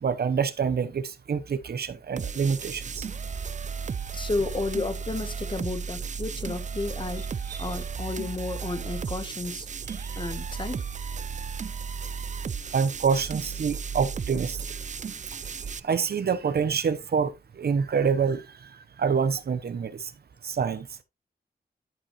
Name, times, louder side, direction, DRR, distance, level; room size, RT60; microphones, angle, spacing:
voice 1, 0.0-3.1 7.5-7.7 12.7-14.6 15.8-18.4 19.0-20.1 20.4-20.9, right 6 dB, 75° right, 0.9 m, -26 dB
sound 1, 2.2-15.8, right 6 dB, 45° right, 0.5 m, -34 dB
voice 2, 4.1-7.3 7.6-9.7 10.2-10.8, left 3 dB, 30° left, 1.0 m, -32 dB
12.5 x 5.3 x 3.0 m
wide cardioid pair, 100°, 17 cm